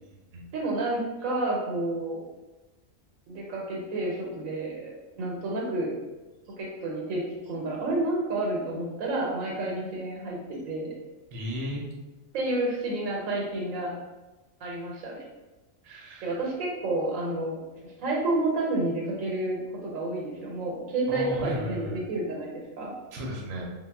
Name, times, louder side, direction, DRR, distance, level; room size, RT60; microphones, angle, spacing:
voice 1, 0.5-2.3 3.3-5.9 6.6-10.9 12.3-13.9 14.6-15.2 16.2-22.9, right 2 dB, 90° right, -2 dB, 1.1 m, -30 dB
voice 2, 11.3-11.8 15.8-16.3 21.1-22.0 23.1-23.6, equal, 70° right, -2 dB, 0.9 m, -34 dB
3.5 x 2.1 x 2.2 m, 1.1 s
omnidirectional pair, 1.4 m